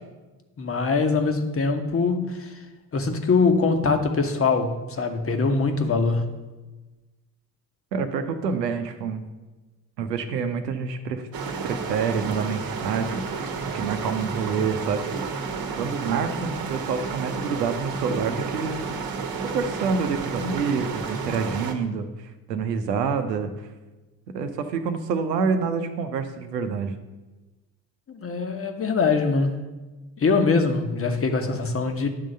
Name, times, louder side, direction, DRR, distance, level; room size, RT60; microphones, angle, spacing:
voice 1, 0.6-2.5 2.9-6.4 28.1-29.6 30.2-32.1, left 4 dB, 30° left, 6 dB, 1.1 m, -23 dB
voice 2, 7.9-9.2 10.0-11.3 11.6-13.4 13.7-15.2 15.8-18.9 19.4-23.5 24.3-26.9, right 5 dB, 85° right, 8 dB, 0.8 m, -27 dB
sound 1, 11.3-21.7, right 5 dB, 45° right, 1.2 m, -31 dB
10.0 x 3.8 x 6.5 m, 1.2 s
figure-of-eight pair, 55°, 48 cm